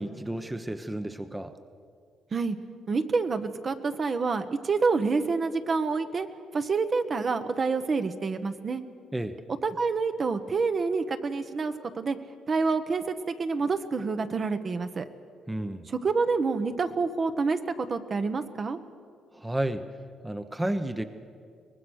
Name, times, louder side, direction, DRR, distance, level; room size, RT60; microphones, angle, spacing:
voice 1, 0.0-1.5 9.1-9.4 15.5-15.8 19.3-19.8 20.2-21.0, right 1 dB, 10° right, 9 dB, 1.0 m, -31 dB
voice 2, 2.9-6.3 6.5-8.8 9.6-12.2 12.5-15.1 15.9-18.8, right 4 dB, 40° right, 8 dB, 1.2 m, -27 dB
23.5 x 19.5 x 6.5 m, 2.3 s
cardioid pair, 90°, 0 cm